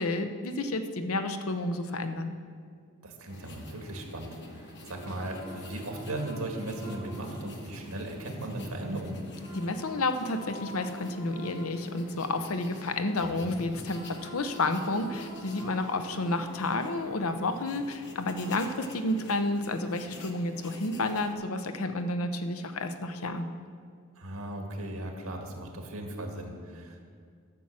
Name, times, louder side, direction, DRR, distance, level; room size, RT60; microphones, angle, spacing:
voice 1, 0.0-2.3 9.5-23.5, left 2 dB, 80° left, 8 dB, 0.8 m, -31 dB
voice 2, 3.0-9.2 13.4-13.5 24.2-27.0, right 1 dB, 80° right, 2 dB, 1.8 m, -37 dB
sound 1, 3.3-21.3, left 1 dB, 55° left, 1.1 m, -48 dB
sound 2, 4.8-8.7 9.3-13.4 13.6-17.9 18.4-19.8, right 1 dB, 20° left, 3.0 m, -48 dB
11.5 x 6.1 x 7.4 m, 2.1 s
head